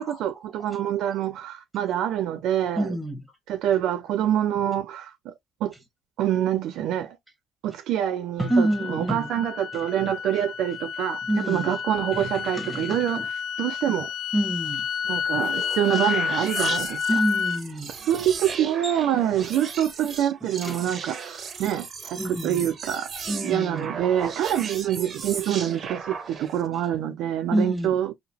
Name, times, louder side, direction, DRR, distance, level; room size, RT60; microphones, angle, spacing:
voice 1, 0.0-2.9 3.5-5.3 5.6-5.7 6.2-7.2 7.6-13.2 13.6-14.1 15.1-17.0 18.0-21.3 21.6-28.1, right 11 dB, 75° right, 0.6 m, -26 dB
voice 2, 0.7-1.2 2.8-3.2 8.4-9.3 9.7-10.1 11.2-11.8 12.1-13.3 14.3-14.9 17.1-17.9 18.8-19.0 20.5-20.9 22.2-22.7 23.3-23.9 27.5-28.0, right 1 dB, 5° right, 1.2 m, -28 dB
sound 1, 8.4-17.6, left 7 dB, 75° left, 0.5 m, -30 dB
sound 2, 15.2-26.7, right 5 dB, 35° right, 0.7 m, -36 dB
2.9 x 2.1 x 2.8 m
cardioid pair, 135°, 0 cm